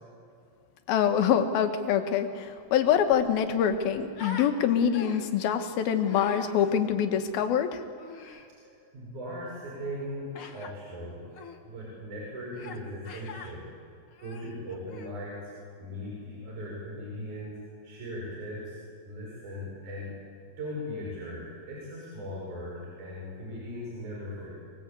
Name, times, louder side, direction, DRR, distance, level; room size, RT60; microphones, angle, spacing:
voice 1, 0.9-7.8, left 8 dB, 75° left, 7 dB, 3.2 m, -25 dB
Human voice, 2.6-2.7 2.9-4.5 4.9-5.4 6.0-6.5 8.0-8.5 10.3-10.7 11.3-11.6 12.5-12.8 13.0-13.5 14.1-15.2, left 5 dB, 45° left, 2.0 m, -44 dB
voice 2, 8.6-11.2 11.6-13.7 14.2-15.5 15.8-18.8 19.0-20.1 20.6-24.5, equal, 50° right, -5 dB, 7.3 m, -39 dB
25.5 x 20.5 x 8.3 m, 2.4 s
omnidirectional pair, 4.5 m